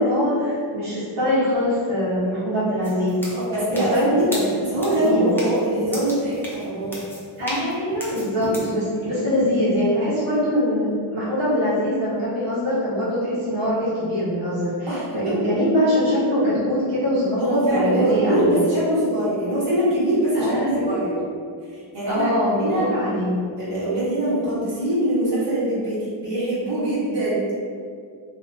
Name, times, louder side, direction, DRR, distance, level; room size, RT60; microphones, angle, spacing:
voice 1, 0.0-3.2 3.7-4.5 4.9-5.3 7.4-18.6 20.3-21.0 22.1-23.4, equal, 85° right, -12 dB, 1.3 m, -23 dB
sound 1, 2.8-8.7, equal, 5° left, 0.7 m, -36 dB
voice 2, 3.3-4.3 4.7-7.0 8.4-8.5 14.9-15.3 17.4-21.2 21.9-22.3 22.6-23.1 23.6-27.4, right 1 dB, 60° right, -11 dB, 1.4 m, -23 dB
3.1 x 2.7 x 2.7 m, 2.1 s
wide cardioid pair, 80°, 49 cm